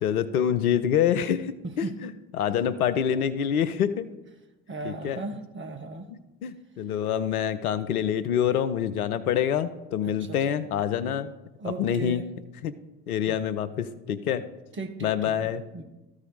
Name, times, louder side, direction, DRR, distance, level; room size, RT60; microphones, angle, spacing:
voice 1, 0.0-4.1 4.8-5.2 6.1-11.3 11.6-12.2 12.6-12.7 13.1-14.4 15.0-15.6, left 9 dB, 75° left, 12 dB, 0.6 m, -26 dB
voice 2, 4.7-6.1 10.0-10.4 11.6-12.3 13.2-13.4 14.7-15.8, right 3 dB, 25° right, 6 dB, 1.1 m, -37 dB
13.5 x 4.9 x 4.1 m, 1.0 s
figure-of-eight pair, 55°, 44 cm